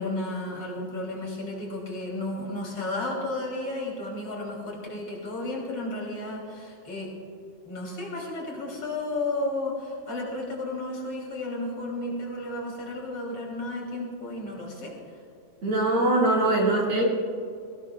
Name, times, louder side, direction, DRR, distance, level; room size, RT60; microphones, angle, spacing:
voice 1, 0.0-7.1 7.7-14.9, left 2 dB, 50° left, -2 dB, 3.6 m, -33 dB
voice 2, 15.6-17.0, right 2 dB, 50° right, -4 dB, 2.7 m, -22 dB
20.5 x 16.5 x 2.3 m, 2.4 s
omnidirectional pair, 3.4 m